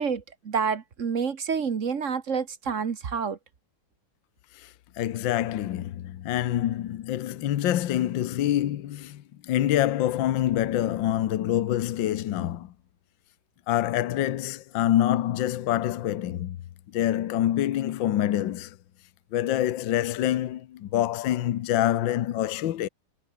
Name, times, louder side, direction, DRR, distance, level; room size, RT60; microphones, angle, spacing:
voice 1, 0.0-3.4, right 6 dB, 40° right, 1.4 m, -28 dB
voice 2, 4.6-12.7 13.7-16.6 16.9-18.8 19.3-22.9, left 12 dB, 65° left, 1.6 m, -26 dB
omnidirectional pair, 2.3 m